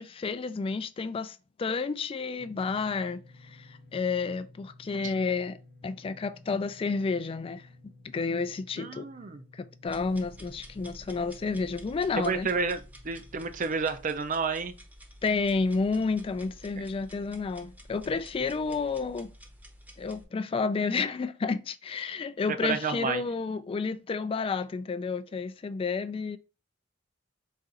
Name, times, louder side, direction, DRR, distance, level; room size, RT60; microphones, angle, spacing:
voice 1, 0.0-5.6 5.8-7.7 8.0-9.1 9.5-12.5 15.2-19.3 20.0-26.4, left 4 dB, 30° left, 0.3 m, -31 dB
sound 1, 2.4-13.8, left 2 dB, 60° left, 0.6 m, -55 dB
voice 2, 8.8-9.4 12.2-14.8 16.8-16.9 22.5-23.2, right 5 dB, 45° right, 0.5 m, -30 dB
sound 2, 9.9-20.2, equal, 10° right, 0.7 m, -50 dB
4.2 x 2.5 x 3.7 m
head